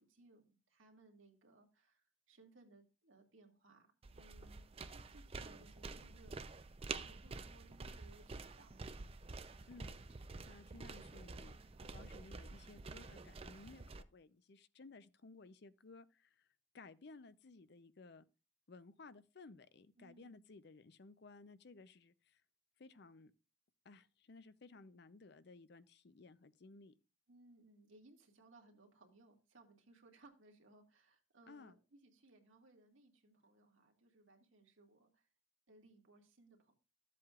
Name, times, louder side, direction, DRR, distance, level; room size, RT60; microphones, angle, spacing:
voice 1, 0.0-8.7 20.0-20.4 27.3-35.3 35.7-36.8, right 2 dB, 90° right, 2.0 m, -65 dB
sound 1, 4.0-14.0, right 3 dB, 30° right, 0.5 m, -49 dB
voice 2, 9.7-16.5 16.7-18.2 18.7-22.4 22.8-23.3 23.8-26.9 31.5-31.8, left 3 dB, 60° left, 0.6 m, -58 dB
13.5 x 7.6 x 2.4 m
head